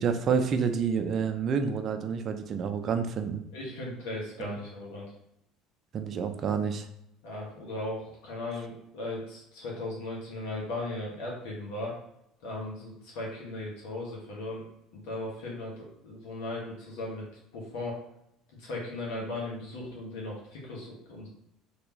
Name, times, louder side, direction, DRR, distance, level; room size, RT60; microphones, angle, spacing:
voice 1, 0.0-3.4 4.4-4.6 5.9-6.9, right 6 dB, 45° right, 7 dB, 0.5 m, -29 dB
voice 2, 3.5-5.1 7.2-12.0 12.4-14.6 14.9-17.2 17.5-18.0 18.6-21.3, left 2 dB, 80° left, -3 dB, 1.4 m, -37 dB
3.4 x 3.0 x 3.0 m, 0.79 s
supercardioid pair, 80°, 0 cm